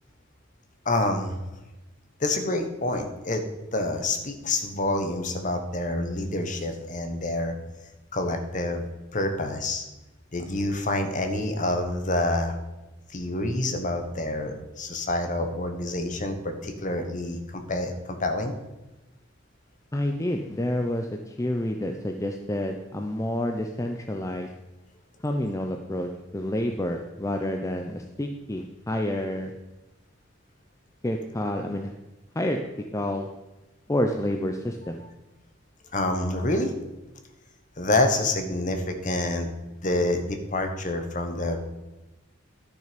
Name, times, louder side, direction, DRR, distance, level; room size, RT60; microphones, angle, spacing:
voice 1, 0.8-1.4 2.2-3.4 3.7-7.5 8.1-9.8 10.3-12.6 13.1-18.5 35.9-36.7 37.8-39.5 39.8-41.6, left 2 dB, 40° left, 6 dB, 1.2 m, -27 dB
voice 2, 19.9-24.5 25.2-29.5 31.0-31.9 32.3-32.6 32.9-33.3 33.9-35.0, left 1 dB, 15° left, 4 dB, 0.5 m, -29 dB
11.5 x 6.5 x 5.1 m, 1.1 s
head